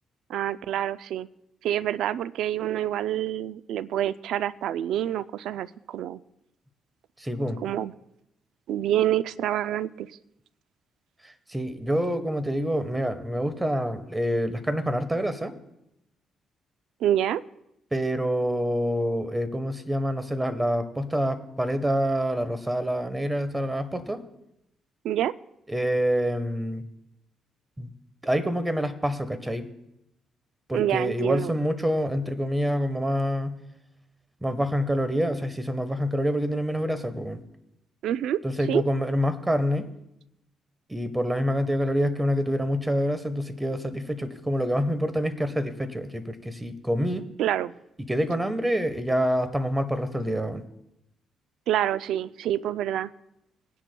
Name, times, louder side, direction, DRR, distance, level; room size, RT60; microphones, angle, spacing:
voice 1, 0.3-1.3 1.6-6.2 7.6-7.9 8.7-10.1 17.0-17.4 25.0-25.3 30.7-31.5 38.0-38.4 38.7-38.8 47.4-47.7 51.7-53.1, right 11 dB, 80° right, 15 dB, 0.3 m, -27 dB
voice 2, 7.2-7.6 11.2-15.5 17.9-24.2 25.7-26.8 27.8-27.9 28.2-29.7 30.7-33.6 34.4-37.4 38.4-39.9 40.9-47.3 48.1-50.6, equal, 10° right, 10 dB, 1.1 m, -27 dB
21.5 x 10.0 x 2.2 m, 0.84 s
cardioid pair, 90°, 0 cm